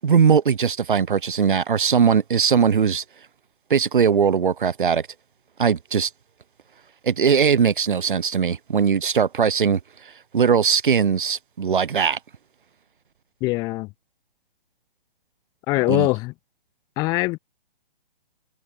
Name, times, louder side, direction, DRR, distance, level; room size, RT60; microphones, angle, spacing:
voice 1, 0.0-3.0 3.7-5.1 5.6-6.1 7.0-9.8 10.3-12.2 15.9-16.1, right 6 dB, 60° right, 6.2 m, -20 dB
voice 2, 13.4-13.9 15.7-16.3 17.0-17.4, left 23 dB, 10° left, 3.2 m, -22 dB
hypercardioid pair, 180°, 29 cm